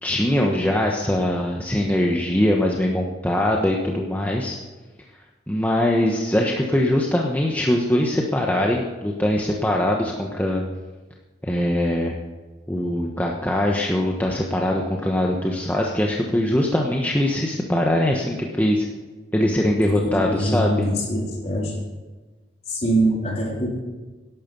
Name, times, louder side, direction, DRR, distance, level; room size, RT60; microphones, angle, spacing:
voice 1, 0.0-4.6 5.5-10.6 11.4-12.2 12.7-18.9 19.3-20.9, left 1 dB, 10° left, -1 dB, 1.2 m, -22 dB
voice 2, 20.0-21.7 22.7-23.7, right 1 dB, 35° left, -1 dB, 3.8 m, -23 dB
18.0 x 11.5 x 5.5 m, 1.3 s
head